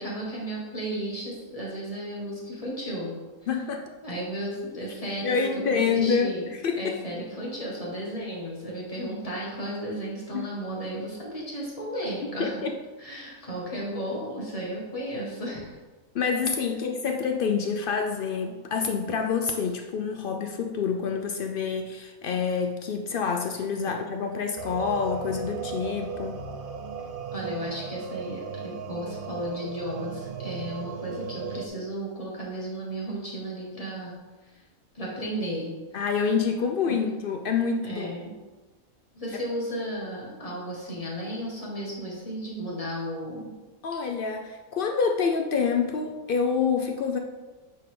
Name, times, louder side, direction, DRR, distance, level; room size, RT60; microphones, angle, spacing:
voice 1, 0.0-3.2 4.0-6.5 6.8-12.5 13.0-15.8 23.9-24.0 27.3-34.1 34.5-34.6 34.9-35.7 36.9-37.0 37.8-38.3 39.1-43.5 43.9-44.0, right 1 dB, 25° left, -4 dB, 1.8 m, -34 dB
voice 2, 3.5-3.8 5.2-6.9 10.3-10.5 12.4-12.7 16.1-26.4 35.9-38.2 43.8-47.2, left 5 dB, 80° left, 4 dB, 0.4 m, -27 dB
sound 1, 24.6-31.7, right 5 dB, 80° right, 0.4 m, -36 dB
9.0 x 4.4 x 3.7 m, 1.2 s
omnidirectional pair, 1.6 m